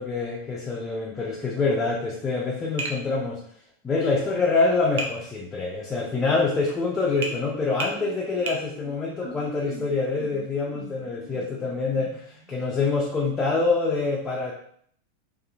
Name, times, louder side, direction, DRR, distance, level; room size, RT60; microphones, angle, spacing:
voice 1, 0.0-3.4 3.8-14.5, left 3 dB, 20° left, -2 dB, 0.4 m, -26 dB
Tap, 2.8-3.0 5.0-5.2 7.2-7.4 7.8-8.0 8.5-8.6, right 3 dB, 55° right, 0.4 m, -30 dB
sound 1, 7.1-12.6, right 1 dB, 90° right, 1.2 m, -44 dB
2.6 x 2.4 x 2.4 m, 0.64 s
figure-of-eight pair, 90°, 0 cm